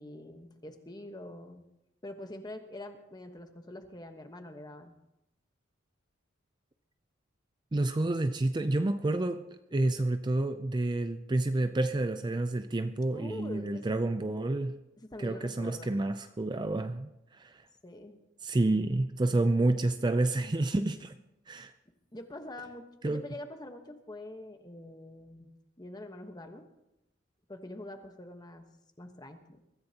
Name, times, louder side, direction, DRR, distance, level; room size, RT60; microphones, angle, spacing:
voice 1, 0.0-1.6 2.0-4.9 13.1-13.9 15.0-15.9 17.8-18.2 22.1-25.5 25.8-26.6 27.5-28.6 29.0-29.6, left 1 dB, 20° left, 1.2 m, -45 dB
voice 2, 7.7-9.4 9.7-14.8 15.2-17.1 17.4-17.5 18.4-21.1 21.5-21.7 23.0-23.2, right 2 dB, 20° right, 0.4 m, -29 dB
23.0 x 14.5 x 2.9 m
head